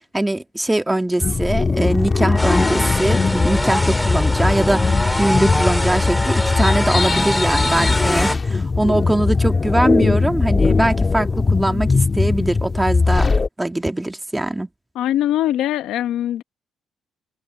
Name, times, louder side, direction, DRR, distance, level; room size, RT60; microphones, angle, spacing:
voice 1, 0.1-13.3 13.6-14.7, right 1 dB, 10° right, 1.7 m, -22 dB
sound 1, 1.2-13.5, left 4 dB, 30° left, 1.5 m, -19 dB
sound 2, 2.4-8.4, left 1 dB, 5° left, 3.8 m, -23 dB
voice 2, 14.9-16.4, left 12 dB, 85° left, 1.1 m, -22 dB
cardioid pair, 90°, 0 cm